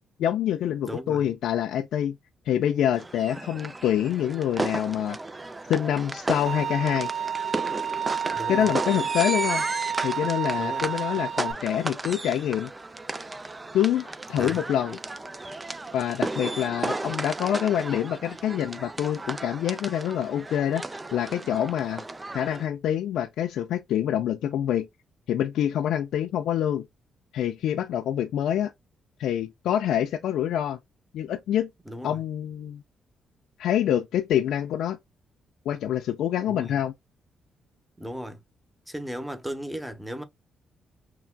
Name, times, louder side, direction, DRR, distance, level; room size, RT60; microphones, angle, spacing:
voice 1, 0.2-2.2 2.5-5.2 5.7-7.1 8.5-9.6 10.0-12.7 13.7-15.0 15.9-22.0 22.3-24.9 25.3-26.8 27.3-28.7 29.2-30.8 31.1-31.7 32.0-32.8 33.6-35.0 35.7-36.9, left 10 dB, 80° left, 0.3 m, -26 dB
voice 2, 0.8-1.2 8.3-8.7 10.6-10.8 14.4-14.7 31.9-32.2 36.5-36.7 38.0-38.4 38.9-40.2, equal, 5° right, 0.9 m, -36 dB
sound 1, 2.9-22.7, right 2 dB, 20° right, 0.4 m, -34 dB
Bowed string instrument, 6.5-11.5, right 8 dB, 70° right, 0.6 m, -30 dB
5.7 x 2.3 x 2.2 m
cardioid pair, 75°, 0 cm